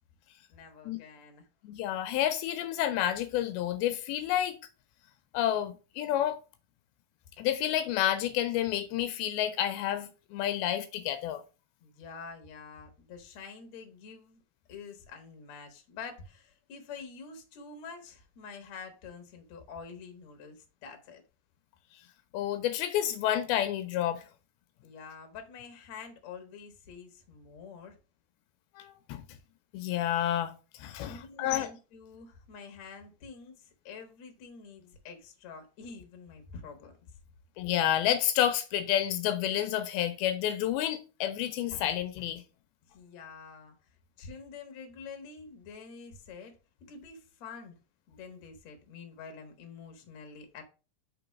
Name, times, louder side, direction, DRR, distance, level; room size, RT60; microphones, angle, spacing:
voice 1, 0.5-1.5 11.8-14.4 14.7-21.2 24.8-28.0 31.1-37.0 42.9-43.8 44.2-46.6 46.9-47.8 48.1-50.6, left 5 dB, 55° left, 2.3 m, -47 dB
voice 2, 1.6-4.6 5.3-6.4 7.4-11.4 22.3-24.2 28.8-29.2 29.7-31.7 37.6-42.4, left 11 dB, 85° left, 2.6 m, -29 dB
5.7 x 3.9 x 5.8 m
omnidirectional pair, 4.3 m